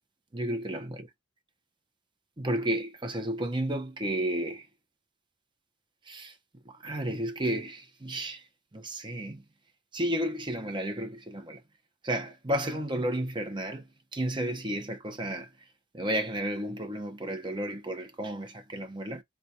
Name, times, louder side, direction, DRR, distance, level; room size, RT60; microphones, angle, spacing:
voice 1, 0.3-1.1 2.4-4.7 6.1-6.3 6.7-8.4 8.7-9.4 9.9-11.6 12.0-13.9 14.1-15.5 15.9-19.2, right 1 dB, 25° right, 0.7 m, -32 dB
3.9 x 2.2 x 2.7 m
head